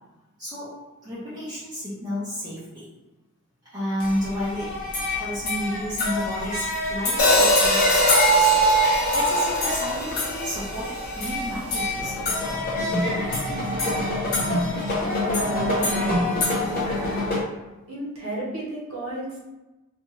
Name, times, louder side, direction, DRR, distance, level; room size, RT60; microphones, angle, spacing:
voice 1, 0.4-0.7 1.0-2.9 3.7-4.8 5.1-8.5 9.1-12.4, equal, 20° right, -11 dB, 0.7 m, -31 dB
sound 1, 4.0-17.4, equal, 40° left, 0.6 m, -25 dB
Hi-hat, 7.2-11.4, left 1 dB, 85° left, 0.7 m, -23 dB
voice 2, 15.2-16.3 16.9-17.4 17.9-19.4, right 2 dB, 75° right, -5 dB, 1.0 m, -32 dB
2.5 x 2.3 x 3.0 m, 1.1 s
head